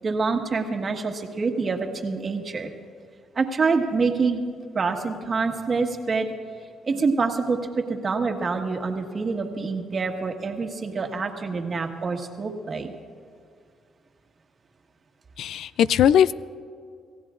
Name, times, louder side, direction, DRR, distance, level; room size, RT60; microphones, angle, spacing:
voice 1, 0.0-2.7 3.3-4.4 4.7-6.3 6.8-12.9, right 4 dB, 40° right, 4 dB, 1.5 m, -26 dB
voice 2, 15.4-16.3, left 9 dB, 75° left, 17 dB, 0.3 m, -19 dB
27.0 x 15.5 x 2.5 m, 2.2 s
cardioid pair, 90°, 0 cm